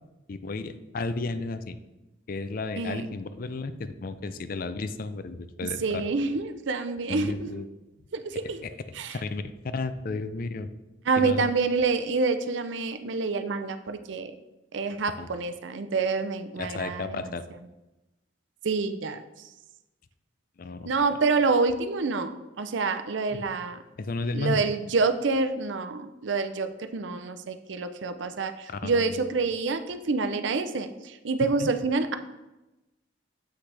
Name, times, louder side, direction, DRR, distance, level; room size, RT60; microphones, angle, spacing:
voice 1, 0.3-1.8 2.3-6.0 7.1-7.7 8.4-8.7 9.1-10.7 11.2-11.5 15.2-15.3 16.6-17.4 20.6-20.9 23.3-23.5 24.0-24.7 28.7-29.2 31.6-31.7, left 3 dB, 45° left, 12 dB, 0.4 m, -33 dB
voice 2, 2.8-3.1 5.8-7.5 8.1-8.6 9.0-9.2 11.1-14.3 14.7-17.2 18.6-19.2 20.9-23.8 24.3-32.2, right 4 dB, 70° right, 9 dB, 0.5 m, -27 dB
7.8 x 6.0 x 3.3 m, 1.0 s
head